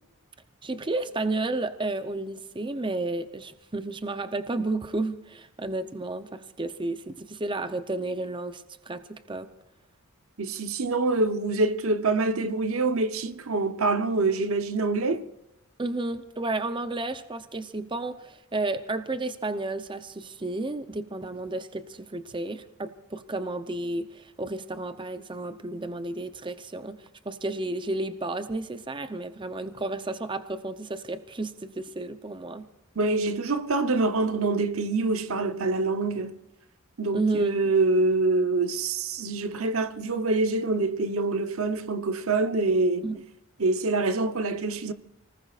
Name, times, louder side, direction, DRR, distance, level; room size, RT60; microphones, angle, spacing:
voice 1, 0.6-9.5 15.8-32.6 37.1-37.5 43.0-43.2, right 2 dB, 20° right, 0.7 m, -32 dB
voice 2, 10.4-15.2 33.0-36.4 37.0-43.1 43.6-44.9, right 3 dB, 65° right, 0.9 m, -25 dB
29.5 x 19.5 x 2.5 m
head